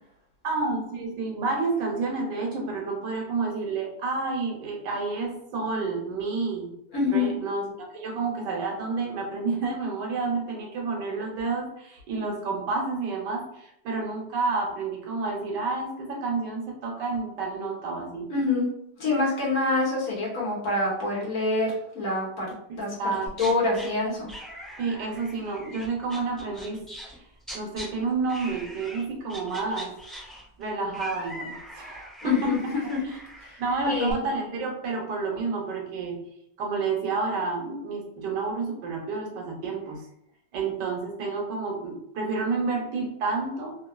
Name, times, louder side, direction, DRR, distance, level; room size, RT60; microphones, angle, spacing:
voice 1, 0.4-6.7 7.0-7.7 7.9-18.3 22.7-23.3 24.8-26.8 27.5-29.9 30.6-32.5 33.0-33.2 33.6-36.2 36.6-40.0 40.5-43.7, right 3 dB, 80° right, 0 dB, 1.4 m, -30 dB
voice 2, 6.9-7.3 18.3-18.7 19.0-22.9 23.4-24.3 32.2-32.6 32.9-33.0 33.9-34.2, left 3 dB, 60° left, -6 dB, 1.4 m, -26 dB
sound 1, 23.3-23.9 24.3-27.2 27.4-27.9 28.3-29.0 29.3-34.1, equal, ahead, 0.9 m, -42 dB
3.5 x 2.3 x 2.2 m, 0.76 s
omnidirectional pair, 1.9 m